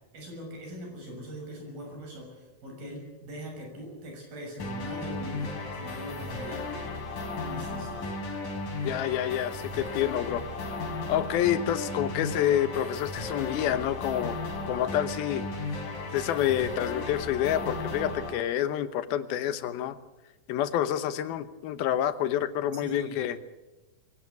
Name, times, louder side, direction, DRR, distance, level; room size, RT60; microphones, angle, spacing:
voice 1, 0.1-6.6 7.4-7.9 22.8-23.3, equal, 75° right, 2 dB, 8.3 m, -41 dB
sound 1, 4.6-18.3, left 3 dB, 65° left, 5.0 m, -35 dB
voice 2, 8.8-10.4 11.1-14.4 14.7-15.4 16.1-20.0 20.5-23.4, left 11 dB, 85° left, 12 dB, 2.9 m, -28 dB
23.0 x 17.0 x 8.1 m, 1.1 s
omnidirectional pair, 4.2 m